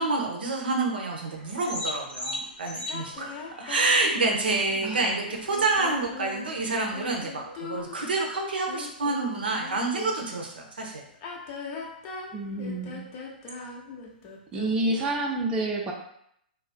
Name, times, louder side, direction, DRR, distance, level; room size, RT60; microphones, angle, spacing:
voice 1, 0.0-3.3 3.6-11.0, right 3 dB, 75° right, 0 dB, 0.6 m, -28 dB
sound 1, 1.3-7.9, left 1 dB, 70° left, 0.8 m, -40 dB
sound 2, 2.9-10.4 11.1-15.1, left 5 dB, 35° left, 0.5 m, -40 dB
voice 2, 4.8-5.1 12.3-13.0 14.5-15.9, right 2 dB, 15° right, -1 dB, 0.4 m, -29 dB
2.4 x 2.2 x 2.4 m, 0.70 s
figure-of-eight pair, 115°, 5 cm